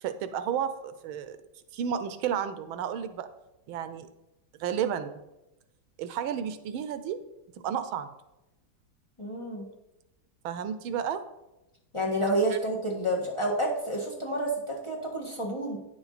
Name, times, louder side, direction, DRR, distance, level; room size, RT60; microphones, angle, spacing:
voice 1, 0.0-1.4 1.7-3.3 3.7-4.1 4.6-5.2 6.0-7.2 7.6-8.1 10.4-11.2, right 8 dB, 85° right, 11 dB, 1.4 m, -32 dB
voice 2, 9.2-9.7 11.9-15.8, right 1 dB, 15° left, -2 dB, 1.5 m, -29 dB
9.6 x 7.1 x 4.1 m, 0.93 s
omnidirectional pair, 2.2 m